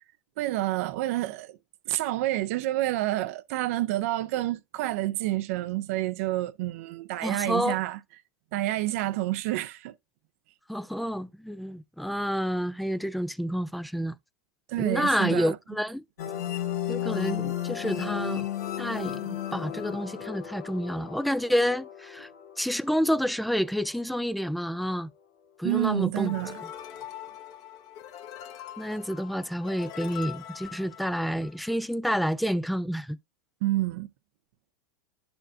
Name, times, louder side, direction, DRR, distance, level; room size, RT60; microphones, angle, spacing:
voice 1, 0.4-1.6 1.9-8.0 8.5-9.9 14.7-15.6 25.6-26.6 33.6-34.1, right 16 dB, 60° right, 0.5 m, -28 dB
voice 2, 7.2-7.8 10.7-14.1 14.8-16.0 16.9-18.5 18.8-22.3 22.6-25.1 25.6-26.3 28.8-33.2, equal, ahead, 0.3 m, -29 dB
sound 1, 16.2-23.6, left 11 dB, 80° left, 1.4 m, -34 dB
sound 2, 26.2-31.7, left 10 dB, 45° left, 1.0 m, -43 dB
11.0 x 4.3 x 2.6 m
hypercardioid pair, 105°, 9 cm